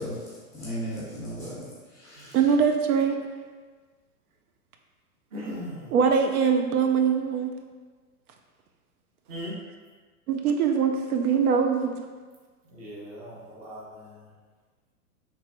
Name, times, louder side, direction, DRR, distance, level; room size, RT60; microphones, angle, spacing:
voice 1, 0.0-2.4, equal, 5° left, -8 dB, 0.9 m, -36 dB
voice 2, 2.3-3.2 5.9-7.5 10.3-12.0, right 6 dB, 70° right, 4 dB, 0.5 m, -22 dB
voice 3, 5.3-5.9 9.3-9.6 12.7-14.2, equal, 15° right, -6 dB, 0.6 m, -39 dB
4.5 x 3.3 x 2.5 m, 1.4 s
hypercardioid pair, 155°, 45 cm